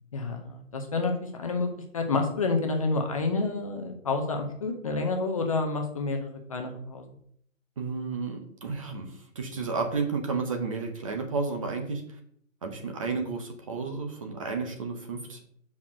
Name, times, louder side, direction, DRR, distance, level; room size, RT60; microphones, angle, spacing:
voice 1, 0.1-7.0, left 3 dB, 25° left, 4 dB, 0.7 m, -29 dB
voice 2, 7.8-12.2 12.6-15.4, right 4 dB, 25° right, 4 dB, 0.8 m, -32 dB
5.8 x 4.6 x 6.1 m, 0.65 s
hypercardioid pair, 160°, 40 cm